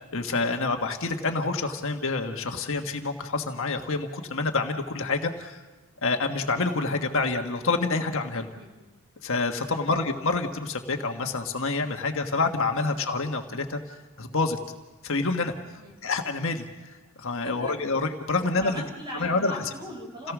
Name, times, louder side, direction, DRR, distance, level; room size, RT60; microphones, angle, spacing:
voice 1, 0.1-5.6 6.0-8.5 9.2-14.6 15.0-15.5 16.0-18.8 19.2-19.6 20.2-20.3, left 3 dB, 65° left, 4 dB, 1.5 m, -27 dB
voice 2, 18.6-20.3, equal, 20° right, 0 dB, 5.9 m, -39 dB
28.5 x 17.5 x 6.2 m, 1.2 s
head